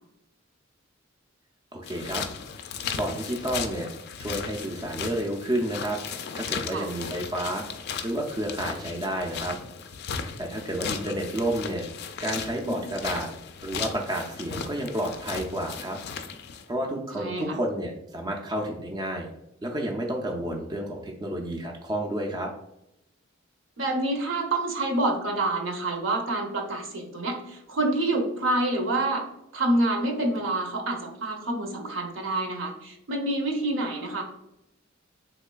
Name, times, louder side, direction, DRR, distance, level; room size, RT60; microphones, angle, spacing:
voice 1, 1.7-2.2 2.9-3.9 4.2-6.0 6.3-7.7 8.0-9.6 10.4-11.9 12.2-13.3 13.6-16.0 16.7-19.3 19.6-22.5, right 1 dB, 20° right, 1 dB, 0.4 m, -30 dB
sound 1, 1.8-16.7, left 6 dB, 55° left, 0.3 m, -36 dB
voice 2, 17.1-17.5 23.8-29.2 29.5-34.2, right 2 dB, 70° right, 3 dB, 0.7 m, -27 dB
3.5 x 3.1 x 2.2 m, 0.83 s
head